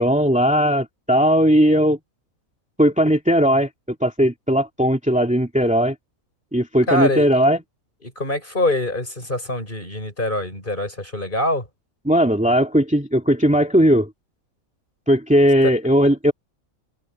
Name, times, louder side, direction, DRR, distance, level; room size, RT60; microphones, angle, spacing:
voice 1, 0.0-2.0 2.8-3.7 4.0-5.9 6.5-7.6 12.1-14.1 15.1-16.3, equal, 5° right, 2.5 m, -17 dB
voice 2, 6.9-7.3 8.0-11.7 15.6-15.7, left 1 dB, 35° left, 7.0 m, -24 dB
omnidirectional pair, 1.5 m